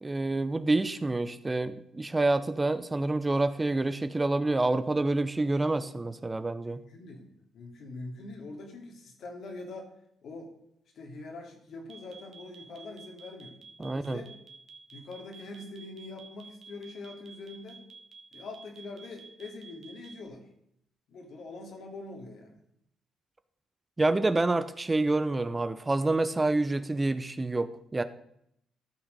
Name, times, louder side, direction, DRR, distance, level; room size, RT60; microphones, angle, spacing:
voice 1, 0.0-6.8 13.8-14.2 24.0-28.0, right 2 dB, 20° right, 12 dB, 0.7 m, -27 dB
voice 2, 6.6-9.9 10.2-10.5 10.9-14.3 14.9-17.9 18.3-20.5 21.1-22.6, left 2 dB, 65° left, 2 dB, 2.8 m, -44 dB
sound 1, 11.9-20.3, right 5 dB, 55° right, 1.7 m, -50 dB
13.5 x 6.1 x 5.3 m, 0.72 s
cardioid pair, 90°, 0 cm